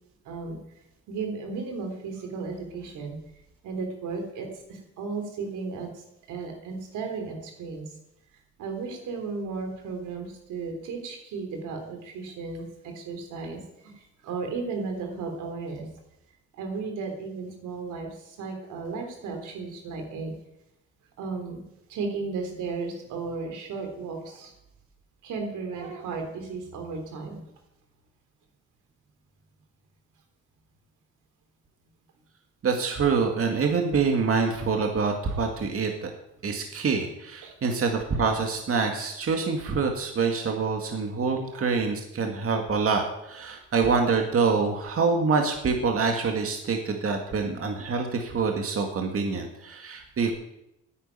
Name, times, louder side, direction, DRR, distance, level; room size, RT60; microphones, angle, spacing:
voice 1, 0.3-0.6 1.1-3.2 3.6-5.9 6.3-7.8 8.6-13.6 14.2-15.9 16.6-18.1 18.4-20.3 21.2-21.6 21.9-24.5 25.2-27.4 37.4-37.5 41.5-41.7, right 4 dB, 85° right, 4 dB, 3.6 m, -34 dB
voice 2, 32.6-36.1 36.4-50.3, right 5 dB, 50° right, 3 dB, 2.2 m, -26 dB
10.0 x 9.6 x 9.1 m, 0.85 s
cardioid pair, 90°, 30 cm